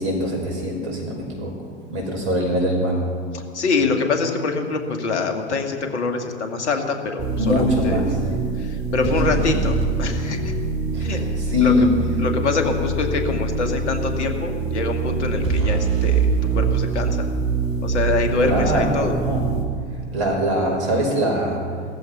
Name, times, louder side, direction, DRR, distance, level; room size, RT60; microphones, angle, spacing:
voice 1, 0.0-1.5 1.9-3.0 7.4-8.1 10.9-11.2 11.5-11.9 18.4-19.5 20.1-21.6, left 1 dB, 70° right, 1 dB, 5.6 m, -22 dB
voice 2, 3.3-8.0 8.6-10.5 11.0-11.7 12.2-17.3 17.8-19.2, left 4 dB, 75° left, 5 dB, 2.0 m, -25 dB
sound 1, 7.2-19.6, right 5 dB, 55° right, 3.6 m, -24 dB
17.5 x 14.0 x 5.8 m, 2.1 s
figure-of-eight pair, 85°, 35 cm